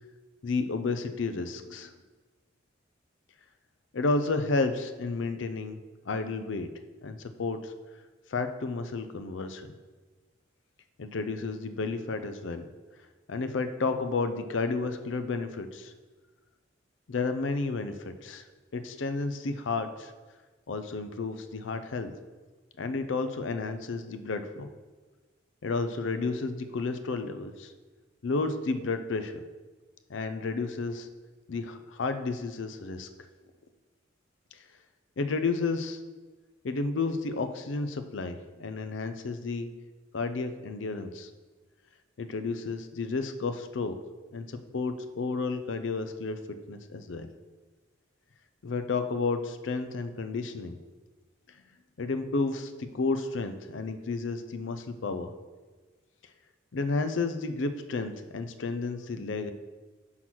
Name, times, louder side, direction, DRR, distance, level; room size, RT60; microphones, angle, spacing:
voice 1, 0.4-1.9 3.9-5.8 6.1-6.7 7.0-7.7 8.3-9.7 11.0-12.7 13.3-15.9 17.1-18.4 18.7-20.1 20.7-22.1 22.8-24.7 25.6-27.7 28.2-29.3 30.1-31.1 31.5-33.1 35.2-36.0 36.6-39.7 40.1-41.3 42.2-44.0 44.3-46.4 46.7-47.3 48.6-50.8 52.0-55.3 56.7-59.5, left 3 dB, 75° left, 9 dB, 0.5 m, -31 dB
6.1 x 3.9 x 5.9 m, 1.3 s
head